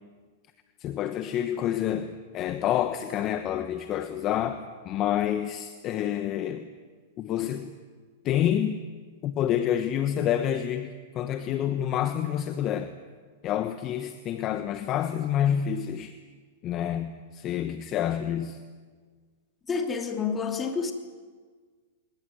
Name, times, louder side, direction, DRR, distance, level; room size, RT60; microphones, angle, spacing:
voice 1, 0.8-6.7 7.2-7.7 8.2-8.8 9.2-12.9 13.4-16.1 16.6-18.6, left 10 dB, 35° left, 1.2 m, -28 dB
voice 2, 19.7-20.9, left 5 dB, 15° left, 2.8 m, -29 dB
21.0 x 20.0 x 9.6 m
hypercardioid pair, 140°, 0 cm